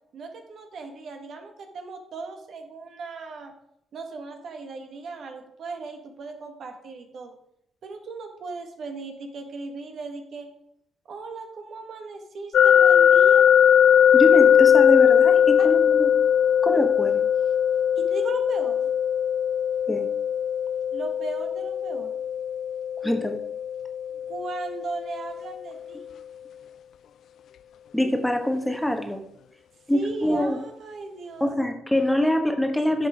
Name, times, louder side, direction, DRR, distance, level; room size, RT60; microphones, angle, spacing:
voice 1, 0.1-3.5 3.9-7.3 7.8-10.5 11.1-13.5 15.6-15.7 18.0-18.9 20.9-22.1 24.3-26.1 29.9-31.5, right 3 dB, 60° right, 5 dB, 1.7 m, -37 dB
sound 1, 12.5-25.4, left 9 dB, 70° left, 0.3 m, -20 dB
voice 2, 14.1-16.1 16.6-17.3 19.9-20.1 23.0-23.4 27.9-29.2 29.9-30.6 31.4-33.1, left 1 dB, 5° left, 5 dB, 1.2 m, -24 dB
10.5 x 6.0 x 5.0 m, 0.79 s
cardioid pair, 90°, 0 cm